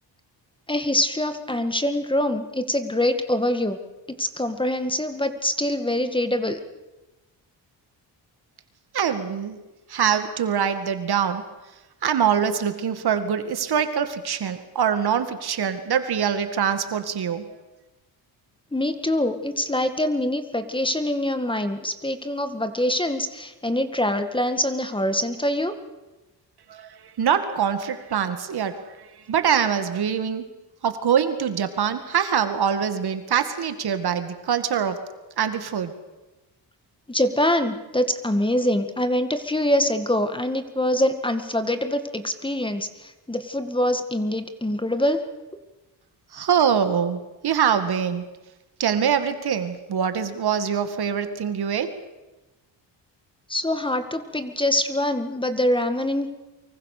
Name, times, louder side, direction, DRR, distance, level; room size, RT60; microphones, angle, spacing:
voice 1, 0.7-3.8 4.2-6.6 18.7-25.7 37.1-45.2 53.5-56.4, left 1 dB, 10° left, 9 dB, 1.9 m, -24 dB
voice 2, 8.9-9.6 9.9-11.4 12.0-17.5 26.7-30.4 30.8-35.0 35.4-35.9 46.3-48.3 48.8-51.9, right 8 dB, 65° right, 9 dB, 2.2 m, -24 dB
24.0 x 23.5 x 6.7 m, 1.1 s
cardioid pair, 100°, 42 cm